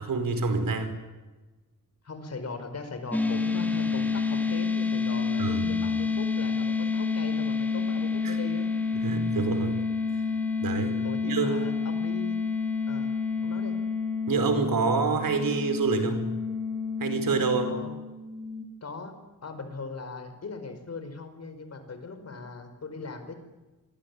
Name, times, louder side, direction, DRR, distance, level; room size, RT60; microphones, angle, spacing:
voice 1, 0.1-1.0 5.4-5.7 8.2-8.4 9.0-9.7 10.6-10.9 11.2-11.6 14.3-16.2 17.0-17.7, right 4 dB, 85° right, 8 dB, 5.1 m, -27 dB
voice 2, 2.0-8.7 10.8-12.4 12.9-13.1 13.4-13.8 17.7-17.9 18.8-19.1 19.4-23.3, left 3 dB, 50° left, 8 dB, 5.2 m, -40 dB
sound 1, 3.1-18.6, left 4 dB, 5° left, 3.4 m, -29 dB
28.5 x 21.5 x 9.8 m, 1.2 s
wide cardioid pair, 130°, 33 cm